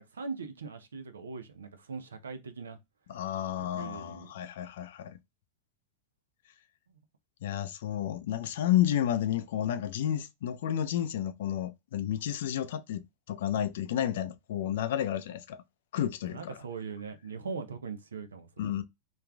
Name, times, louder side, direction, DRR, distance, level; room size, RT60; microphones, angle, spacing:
voice 1, 0.0-2.8 3.6-4.3 6.9-7.0 16.2-18.7, right 5 dB, 90° right, 0.5 m, -41 dB
voice 2, 3.1-5.2 7.4-15.6 15.9-16.6 18.6-18.8, left 11 dB, 70° left, 0.4 m, -31 dB
3.1 x 2.5 x 2.2 m
hypercardioid pair, 100°, 0 cm